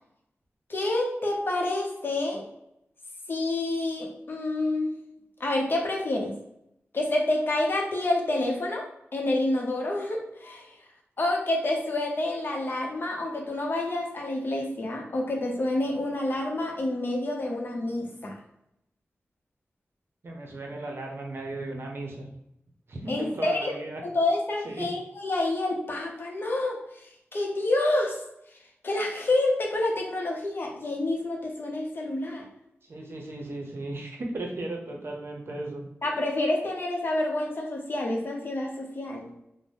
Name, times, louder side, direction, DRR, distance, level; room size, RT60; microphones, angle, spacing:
voice 1, 0.7-2.4 3.3-5.0 5.4-6.3 6.9-8.8 9.1-10.7 11.2-18.3 23.1-23.7 24.0-28.2 28.8-32.4 36.0-39.3, left 2 dB, 50° left, 0 dB, 0.7 m, -28 dB
voice 2, 20.2-22.3 22.9-24.0 24.6-24.9 32.8-35.9, right 2 dB, 60° right, 1 dB, 0.6 m, -36 dB
2.6 x 2.1 x 3.3 m, 0.81 s
wide cardioid pair, 105°, 5 cm